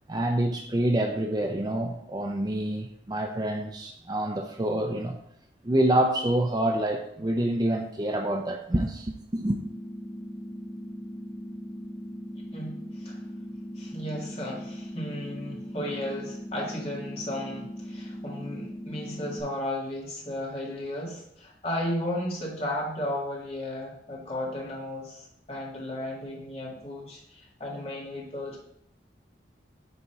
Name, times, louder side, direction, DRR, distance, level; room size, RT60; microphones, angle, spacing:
voice 1, 0.1-5.2 5.6-9.6, right 1 dB, 20° right, 0.5 m, -27 dB
sound 1, 9.4-19.4, equal, 70° right, 3.1 m, -39 dB
voice 2, 12.5-13.2 13.8-28.6, left 1 dB, 35° left, 2.1 m, -34 dB
9.7 x 4.1 x 4.7 m
head